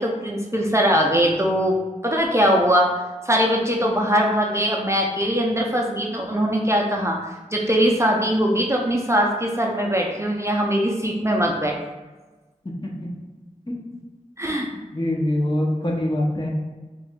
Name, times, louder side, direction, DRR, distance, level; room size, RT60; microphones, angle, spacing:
voice 1, 0.0-2.9 3.3-11.8 14.4-14.7, equal, 20° right, -1 dB, 0.5 m, -21 dB
voice 2, 14.9-16.5, left 1 dB, 35° left, -2 dB, 0.8 m, -24 dB
3.3 x 3.0 x 3.6 m, 1.2 s
wide cardioid pair, 50°, 14 cm